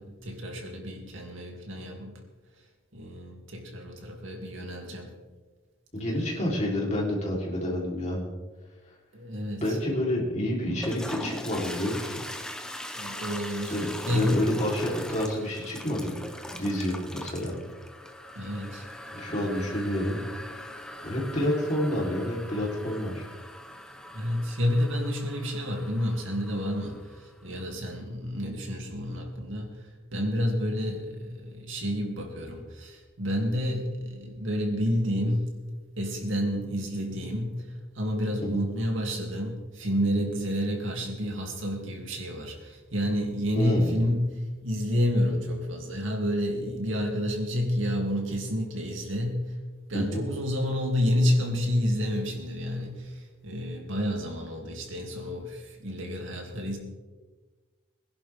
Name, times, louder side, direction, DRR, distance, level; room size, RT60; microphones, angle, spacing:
voice 1, 0.0-2.2 2.9-5.1 9.1-9.8 12.9-14.4 18.3-18.8 24.1-35.5 36.0-49.6 49.9-56.8, equal, 75° right, 1 dB, 2.7 m, -29 dB
voice 2, 5.9-8.2 9.6-12.1 13.7-16.1 16.5-17.6 19.1-20.2 21.0-23.2 38.4-38.6 43.6-43.9 49.9-50.3, left 1 dB, 35° left, -3 dB, 3.7 m, -29 dB
Toilet flush, 10.6-27.4, left 1 dB, 5° left, 0.9 m, -41 dB
22.0 x 11.0 x 3.6 m, 1.3 s
head